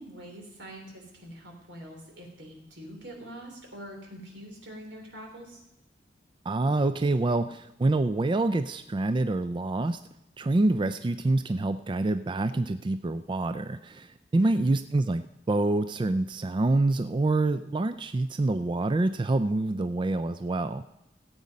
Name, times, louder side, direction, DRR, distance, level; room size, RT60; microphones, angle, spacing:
voice 1, 0.0-5.6 14.4-14.7, equal, 85° right, 1 dB, 3.4 m, -44 dB
voice 2, 6.5-10.0 10.4-20.8, right 2 dB, 25° right, 11 dB, 0.4 m, -26 dB
16.0 x 8.4 x 5.3 m, 0.87 s
head